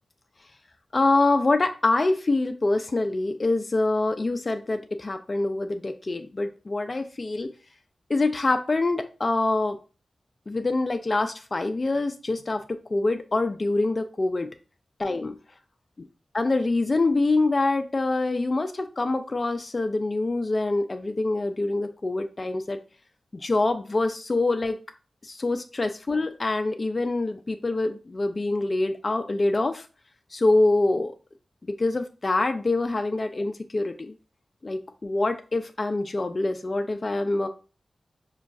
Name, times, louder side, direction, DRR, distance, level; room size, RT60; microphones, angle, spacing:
voice 1, 0.9-7.5 8.1-9.8 10.5-12.6 12.9-14.5 15.0-15.3 16.3-22.8 23.3-24.8 25.2-29.8 30.3-31.1 31.7-34.1 34.6-37.5, left 2 dB, 45° left, 7 dB, 0.3 m, -25 dB
5.0 x 2.3 x 2.4 m, 0.35 s
cardioid pair, 45°, 0 cm